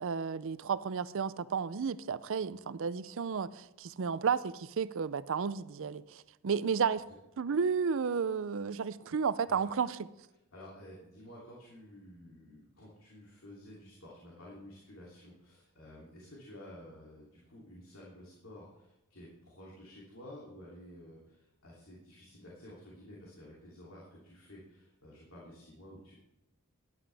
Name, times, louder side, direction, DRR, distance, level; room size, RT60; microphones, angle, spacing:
voice 1, 0.0-7.0 7.4-9.9, right 6 dB, 65° right, 0.5 m, -32 dB
voice 2, 10.5-26.2, left 1 dB, 65° left, 3.0 m, -52 dB
13.5 x 11.0 x 3.4 m
head